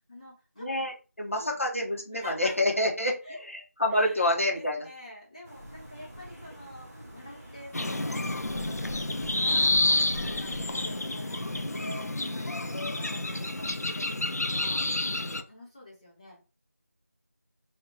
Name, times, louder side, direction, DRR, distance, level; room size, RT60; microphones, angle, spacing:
voice 1, 0.0-0.9 1.3-1.6 2.1-2.8 3.2-3.4 3.9-16.4, left 1 dB, 20° left, -6 dB, 1.2 m, -47 dB
voice 2, 0.6-3.1 3.4-4.9, left 1 dB, 50° left, -1 dB, 1.2 m, -27 dB
sound 1, 5.4-13.7, equal, 5° left, 0.6 m, -45 dB
sound 2, 7.7-15.4, left 2 dB, 70° left, 0.5 m, -29 dB
2.9 x 2.8 x 3.8 m, 0.33 s
figure-of-eight pair, 175°, 9 cm